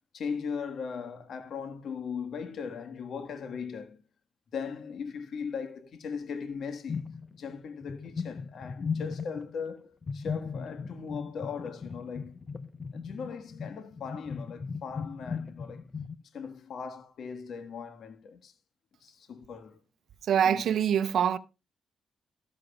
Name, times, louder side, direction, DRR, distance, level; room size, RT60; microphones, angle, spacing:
voice 1, 0.1-4.0 4.5-7.0 7.3-12.4 12.9-15.8 16.3-18.5 19.0-19.8 20.4-20.6, left 6 dB, 70° left, 1.5 m, -38 dB
sound 1, 6.9-7.5 7.8-9.5 10.0-16.2, left 5 dB, 45° left, 0.8 m, -37 dB
voice 2, 20.2-21.4, right 8 dB, 70° right, 0.7 m, -24 dB
14.0 x 13.0 x 2.3 m
supercardioid pair, 50°, 0 cm